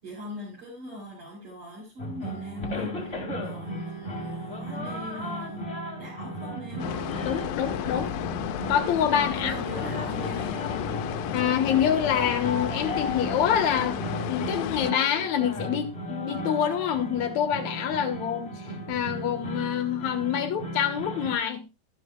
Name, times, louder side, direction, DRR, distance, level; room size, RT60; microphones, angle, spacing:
voice 1, 0.0-5.7 6.0-7.0 9.2-10.7, left 2 dB, 40° right, 5.7 m, -40 dB
sound 1, 2.0-21.3, equal, 20° left, 1.8 m, -35 dB
sound 2, 6.8-14.9, left 10 dB, 85° left, 2.4 m, -33 dB
voice 2, 7.2-8.1 8.7-9.5 11.3-13.9 14.3-21.6, left 9 dB, 65° left, 2.3 m, -26 dB
13.0 x 12.0 x 2.3 m
omnidirectional pair, 4.0 m